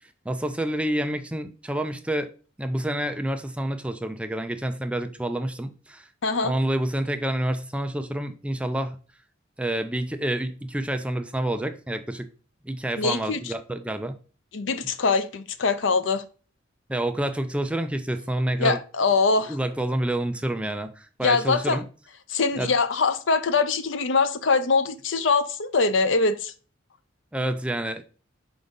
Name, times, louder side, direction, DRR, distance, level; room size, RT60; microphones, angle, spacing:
voice 1, 0.3-2.3 2.6-6.1 6.4-9.0 9.6-12.3 12.6-14.1 16.9-18.8 19.5-21.9 22.6-22.7 27.3-28.0, right 1 dB, 5° right, 0.4 m, -28 dB
voice 2, 6.2-6.5 13.0-13.5 14.5-16.2 18.6-19.6 21.2-21.8 22.3-26.5, left 4 dB, 75° left, 0.6 m, -23 dB
4.9 x 3.9 x 5.2 m
head